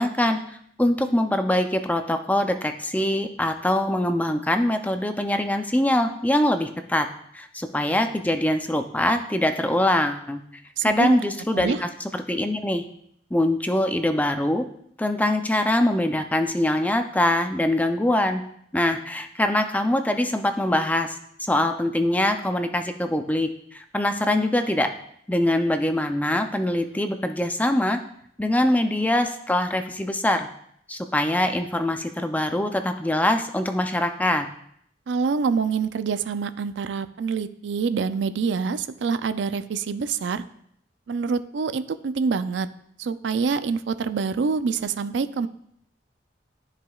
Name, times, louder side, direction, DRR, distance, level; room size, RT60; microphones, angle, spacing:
voice 1, 0.0-7.1 7.3-10.4 10.8-12.8 13.3-14.7 15.0-18.4 18.7-24.9 25.3-28.0 28.4-30.5 30.9-34.5, left 1 dB, 10° left, 7 dB, 0.4 m, -23 dB
voice 2, 10.8-11.2 11.5-11.8 35.1-40.4 41.1-42.7 43.0-45.5, right 5 dB, 80° right, 12 dB, 0.4 m, -26 dB
13.0 x 4.9 x 2.4 m, 0.70 s
head